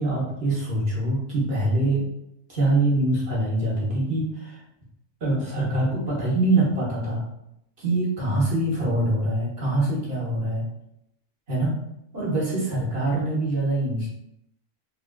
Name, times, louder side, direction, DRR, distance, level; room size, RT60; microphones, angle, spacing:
voice 1, 0.0-2.0 2.5-4.6 5.2-7.2 7.8-10.7 11.5-11.7 12.1-14.1, right 2 dB, 45° right, -6 dB, 1.1 m, -24 dB
3.4 x 2.4 x 2.2 m, 0.80 s
omnidirectional pair, 1.5 m